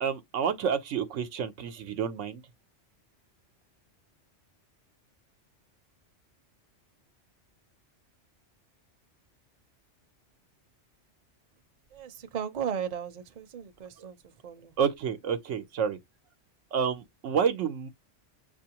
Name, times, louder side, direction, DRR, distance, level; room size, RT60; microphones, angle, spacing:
voice 1, 0.0-2.4 14.0-14.1 14.8-16.0 16.7-17.9, right 7 dB, 90° right, 1.0 m, -29 dB
voice 2, 11.9-14.2 14.4-14.7, right 8 dB, 45° right, 0.7 m, -35 dB
6.9 x 2.6 x 2.9 m
omnidirectional pair, 1.2 m